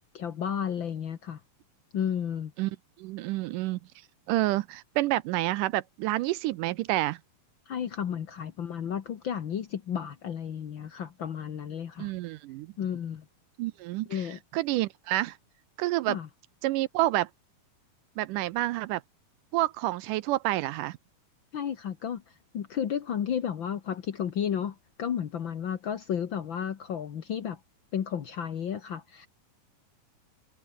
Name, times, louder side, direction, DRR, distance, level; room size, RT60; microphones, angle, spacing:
voice 1, 0.1-1.4 1.9-2.5 7.7-12.1 12.8-13.2 14.1-14.4 16.1-16.3 21.5-27.6 27.9-29.3, left 8 dB, 70° left, 1.1 m, -32 dB
voice 2, 3.0-3.8 4.3-7.2 12.0-12.7 13.6-14.3 14.5-15.4 15.8-16.2 16.6-17.3 18.2-19.0 19.5-21.0, right 17 dB, 80° right, 1.9 m, -28 dB
omnidirectional pair, 4.3 m